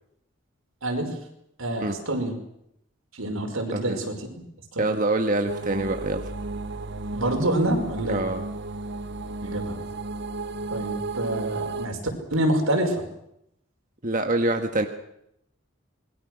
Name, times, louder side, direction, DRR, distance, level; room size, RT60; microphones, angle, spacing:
voice 1, 1.6-2.3 3.1-4.1 4.7-4.9 7.1-8.2 9.4-9.8 10.7-12.0 12.3-13.0, right 1 dB, 85° right, 3 dB, 5.6 m, -26 dB
voice 2, 4.8-6.2 8.1-8.4 14.0-14.9, right 2 dB, 40° right, 4 dB, 1.5 m, -25 dB
sound 1, 5.5-11.9, right 3 dB, 55° right, 1.0 m, -33 dB
26.5 x 21.5 x 6.4 m, 0.76 s
head